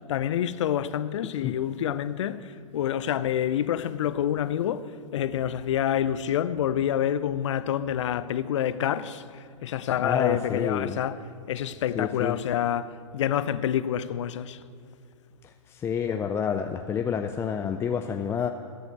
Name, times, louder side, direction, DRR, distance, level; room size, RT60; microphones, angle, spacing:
voice 1, 0.1-4.8 5.1-9.2 9.6-11.2 11.5-14.6, left 10 dB, 55° left, 0.6 m, -27 dB
voice 2, 10.0-11.0 11.9-12.4 15.4-18.5, left 7 dB, 15° left, 0.4 m, -29 dB
14.0 x 6.9 x 9.2 m
figure-of-eight pair, 110°, 18 cm